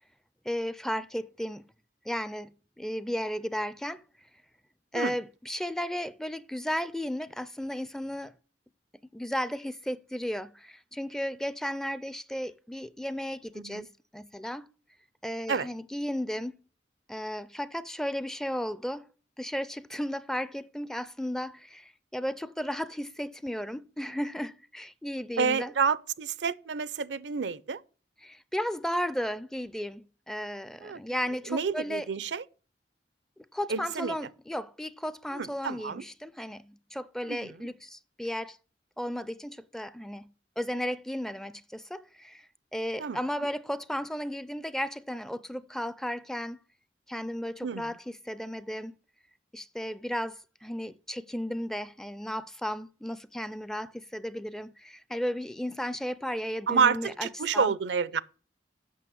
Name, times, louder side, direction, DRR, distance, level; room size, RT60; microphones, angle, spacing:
voice 1, 0.4-1.6 2.1-2.5 2.8-4.0 4.9-8.3 9.1-13.9 14.1-14.7 15.2-16.6 17.1-19.1 19.4-25.7 28.2-32.1 33.5-38.6 39.0-40.3 40.6-46.6 47.1-48.9 49.5-57.7, equal, 5° left, 0.4 m, -34 dB
voice 2, 13.6-13.9 15.5-15.7 25.4-27.8 30.8-31.0 31.5-32.4 33.7-34.2 35.3-36.0 37.3-37.5 43.0-43.2 47.6-47.9 56.7-58.2, right 5 dB, 80° right, 0.6 m, -29 dB
8.4 x 6.3 x 6.9 m
head